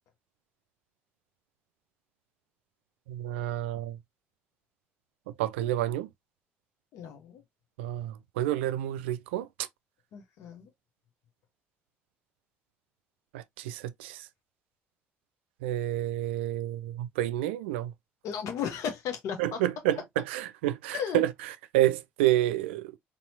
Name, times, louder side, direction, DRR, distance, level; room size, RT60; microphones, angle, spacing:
voice 1, 3.1-4.0 5.4-6.1 7.8-9.7 13.3-14.2 15.6-17.9 19.4-21.3 21.7-22.9, right 14 dB, 70° right, 0.4 m, -29 dB
voice 2, 6.9-7.4 10.1-10.7 18.2-19.6 20.9-21.2, left 8 dB, 55° left, 0.7 m, -35 dB
4.1 x 2.8 x 2.6 m
figure-of-eight pair, 50°, 6 cm